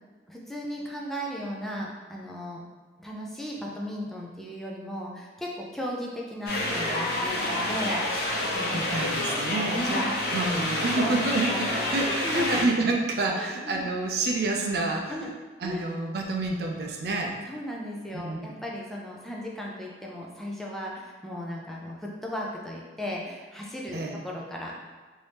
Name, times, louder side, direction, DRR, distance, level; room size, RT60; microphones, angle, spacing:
voice 1, 0.3-2.6 3.0-9.0 9.7-10.2 10.8-12.6 13.4-13.9 15.1-15.3 15.6-15.8 17.4-24.8, equal, ahead, -3 dB, 0.4 m, -36 dB
sound 1, 6.5-12.6, left 1 dB, 55° left, 0.8 m, -28 dB
voice 2, 8.7-10.0 10.3-15.1 15.6-17.3 18.1-18.5 23.9-24.2, right 2 dB, 60° right, 0 dB, 0.4 m, -28 dB
3.1 x 2.7 x 3.3 m, 1.3 s
head